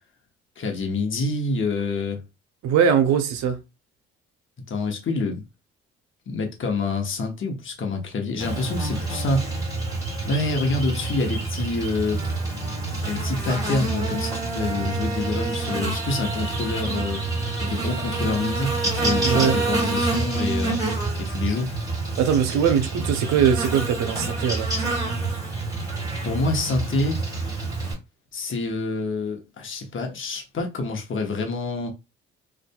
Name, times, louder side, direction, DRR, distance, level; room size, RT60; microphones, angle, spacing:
voice 1, 0.6-2.2 4.7-5.4 6.3-9.6 10.3-12.2 13.1-17.2 17.6-20.8 21.2-21.7 26.2-27.2 28.3-31.9, left 3 dB, 45° left, 0.9 m, -27 dB
voice 2, 2.6-3.6 19.2-19.6 22.2-24.7, right 8 dB, 70° right, 0.6 m, -21 dB
Buzz, 8.4-27.9, right 2 dB, 10° right, 1.5 m, -27 dB
2.6 x 2.4 x 2.2 m
hypercardioid pair, 60°, 29 cm